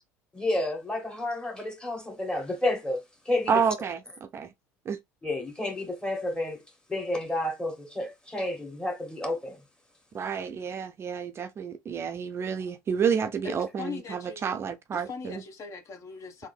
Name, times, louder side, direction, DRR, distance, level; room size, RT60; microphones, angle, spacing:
voice 1, 0.3-3.5 5.2-6.6 6.9-9.6, left 1 dB, 10° left, 1.6 m, -30 dB
voice 2, 3.5-4.5 4.9-5.0 10.1-15.4, right 6 dB, 35° right, 0.4 m, -29 dB
voice 3, 13.4-14.4 14.9-16.5, left 5 dB, 45° left, 1.0 m, -40 dB
3.5 x 2.6 x 3.3 m
supercardioid pair, 85°, 7 cm